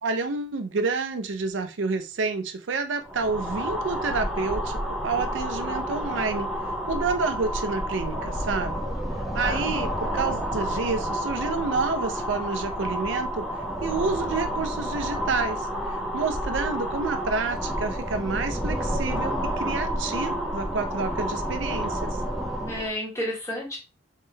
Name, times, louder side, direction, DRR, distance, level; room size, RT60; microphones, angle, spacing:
voice 1, 0.0-6.5 6.9-8.8 9.3-13.4 13.8-15.7 16.1-22.2, right 4 dB, 90° right, 7 dB, 0.5 m, -29 dB
sound 1, 3.0-22.9, equal, ahead, 0.4 m, -30 dB
voice 2, 8.8-9.6 22.6-23.8, left 1 dB, 15° left, -3 dB, 1.3 m, -33 dB
3.7 x 3.2 x 2.7 m, 0.30 s
head